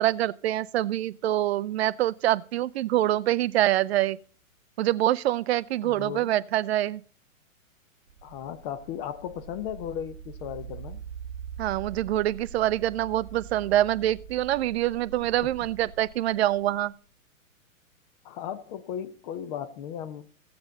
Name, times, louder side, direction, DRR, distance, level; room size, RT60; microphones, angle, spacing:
voice 1, 0.0-4.2 4.8-7.0 11.6-16.9, right 14 dB, 50° right, 0.5 m, -25 dB
voice 2, 5.8-6.3 8.2-11.0 15.2-15.5 18.2-20.3, left 9 dB, 35° left, 1.0 m, -36 dB
sound 1, 8.1-16.9, right 8 dB, 80° right, 1.1 m, -43 dB
15.5 x 7.8 x 4.1 m
hypercardioid pair, 120°, 41 cm